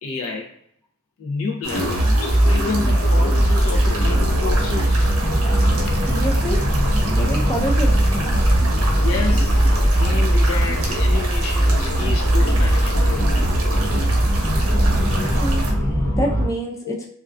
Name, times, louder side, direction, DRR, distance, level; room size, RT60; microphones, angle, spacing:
voice 1, 0.0-0.6 1.2-5.0 8.9-13.5 16.8-17.1, left 4 dB, 75° left, 0 dB, 0.4 m, -30 dB
sound 1, 1.6-15.7, right 2 dB, 80° right, 0.6 m, -29 dB
sound 2, 1.7-16.5, right 1 dB, 55° left, 1.1 m, -19 dB
sound 3, 3.5-16.2, equal, 25° right, 0.8 m, -27 dB
voice 2, 6.1-6.6 7.0-7.9 15.2-15.7 16.2-17.0, right 1 dB, 15° left, -1 dB, 0.4 m, -26 dB
2.4 x 2.3 x 2.2 m, 0.66 s
head